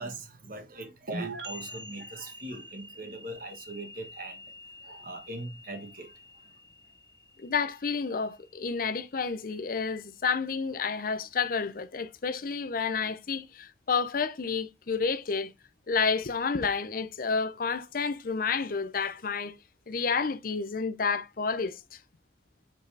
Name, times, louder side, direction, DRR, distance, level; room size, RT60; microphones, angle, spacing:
voice 1, 0.0-6.5, right 2 dB, 50° right, 1.3 m, -41 dB
sound 1, 1.1-8.6, right 1 dB, 85° right, 2.0 m, -44 dB
voice 2, 7.4-15.5 15.9-19.6 19.9-22.0, left 5 dB, 50° left, 0.6 m, -30 dB
7.3 x 4.1 x 3.3 m
head